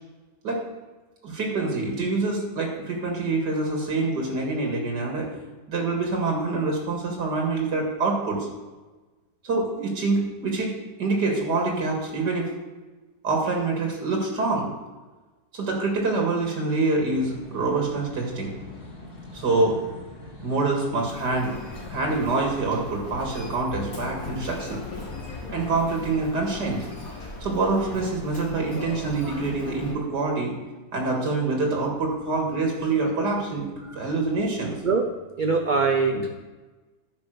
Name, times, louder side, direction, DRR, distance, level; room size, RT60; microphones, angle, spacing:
voice 1, 1.2-5.3 5.7-8.5 9.4-10.7 11.0-12.5 13.2-14.7 15.5-18.5 19.3-19.8 20.4-21.5 21.9-24.8 25.5-26.8 27.4-30.5 30.9-33.7 33.9-34.8 36.1-36.2, right 3 dB, 80° right, 0 dB, 2.4 m, -26 dB
sound 1, 17.1-22.5, left 2 dB, 30° left, 3.0 m, -43 dB
Human voice, 21.0-29.9, left 3 dB, 55° left, 2.5 m, -38 dB
voice 2, 35.4-36.3, right 4 dB, 50° right, 3 dB, 0.5 m, -22 dB
9.9 x 5.4 x 6.2 m, 1.2 s
omnidirectional pair, 1.8 m